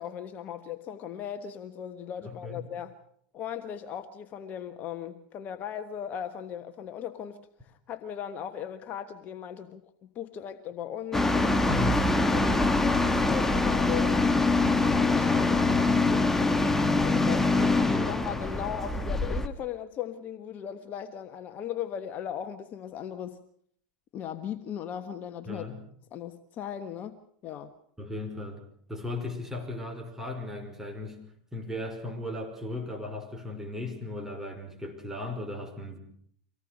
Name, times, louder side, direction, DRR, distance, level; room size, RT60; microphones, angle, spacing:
voice 1, 0.0-2.9 3.3-11.8 12.2-14.2 14.8-16.0 17.0-23.4 24.1-25.6 26.1-27.7, left 9 dB, 40° left, 1.4 m, -38 dB
voice 2, 2.2-2.7 11.7-12.0 15.9-16.3 17.2-18.2 25.5-25.8 28.0-28.6 28.9-31.2 31.5-36.0, left 2 dB, 10° right, 5.4 m, -36 dB
sound 1, 11.1-19.5, left 3 dB, 10° left, 1.6 m, -24 dB
24.5 x 18.0 x 6.6 m
hypercardioid pair, 100°, 4 cm